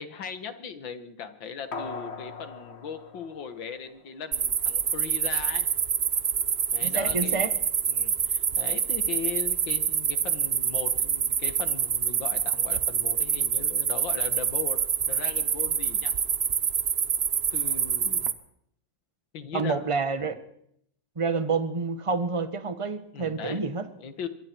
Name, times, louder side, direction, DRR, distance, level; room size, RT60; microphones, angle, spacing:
voice 1, 0.0-5.7 6.7-7.5 7.9-16.1 17.5-18.4 19.3-19.9 23.1-23.6 24.0-24.3, left 6 dB, 75° left, 10 dB, 2.3 m, -38 dB
sound 1, 1.7-4.3 4.6-4.7, left 4 dB, 35° left, 1.6 m, -40 dB
sound 2, 4.3-18.3, right 7 dB, 50° right, 0.8 m, -26 dB
voice 2, 6.8-7.5 19.5-20.3 21.2-23.8, right 4 dB, 20° right, 10 dB, 1.1 m, -28 dB
25.5 x 22.5 x 4.6 m, 0.71 s
omnidirectional pair, 2.1 m